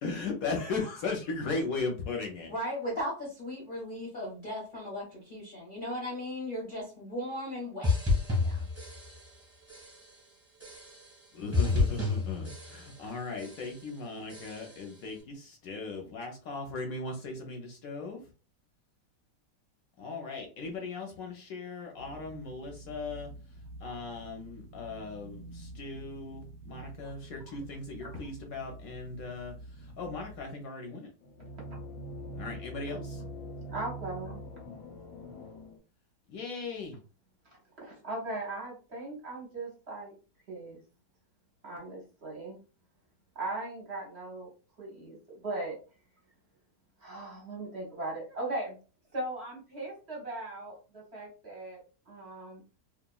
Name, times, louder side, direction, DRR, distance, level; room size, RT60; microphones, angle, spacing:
voice 1, 0.0-2.5 11.3-18.2 20.0-23.3 23.8-31.1 32.4-33.2 36.3-37.0, left 3 dB, 70° left, 2 dB, 0.9 m, -37 dB
voice 2, 2.5-8.1, equal, 45° left, -3 dB, 0.6 m, -37 dB
sound 1, 7.8-9.4 9.7-10.2 10.6-11.2 11.5-13.1 13.4-13.9 14.3-14.9, left 3 dB, 10° right, 1.0 m, -31 dB
sound 2, 22.0-30.5, right 1 dB, 70° right, 0.7 m, -48 dB
sound 3, 31.2-35.8, right 1 dB, 85° left, 1.2 m, -42 dB
voice 3, 33.7-34.4 37.8-40.1 40.5-40.8 41.6-42.6 43.3-44.5 44.8-45.8 47.0-48.8 49.1-51.8 52.1-52.6, right 2 dB, 50° right, -3 dB, 0.9 m, -38 dB
2.9 x 2.4 x 2.2 m, 0.35 s
omnidirectional pair, 1.8 m